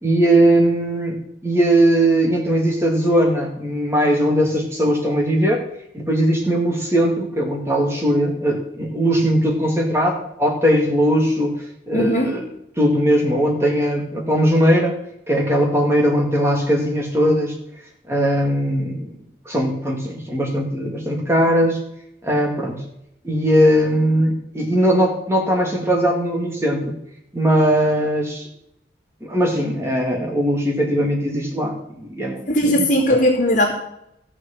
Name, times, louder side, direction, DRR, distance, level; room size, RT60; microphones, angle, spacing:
voice 1, 0.0-5.6 5.9-12.4 12.8-15.0 15.3-17.6 18.1-19.1 19.5-21.8 22.2-22.8 23.2-26.9 27.3-28.5 29.2-32.8, equal, 15° right, 0 dB, 2.3 m, -19 dB
voice 2, 11.9-12.3 32.5-33.7, equal, 45° left, -9 dB, 2.8 m, -18 dB
14.5 x 6.4 x 7.3 m, 0.78 s
head